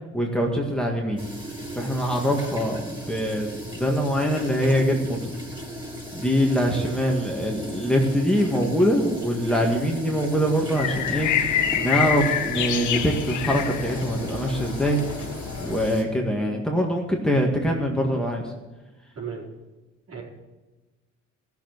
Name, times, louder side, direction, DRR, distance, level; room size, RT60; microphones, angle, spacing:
voice 1, 0.1-1.2 1.8-5.3 6.1-15.0 15.6-18.5, equal, ahead, 0 dB, 1.9 m, -24 dB
sound 1, 1.2-16.0, equal, 15° right, 3.8 m, -36 dB
voice 2, 6.6-7.0 19.1-19.5 20.1-20.2, right 6 dB, 55° right, -3 dB, 4.9 m, -36 dB
sound 2, 10.8-15.9, left 9 dB, 80° left, 1.1 m, -27 dB
15.0 x 7.1 x 8.0 m, 1.1 s
cardioid pair, 90°, 30 cm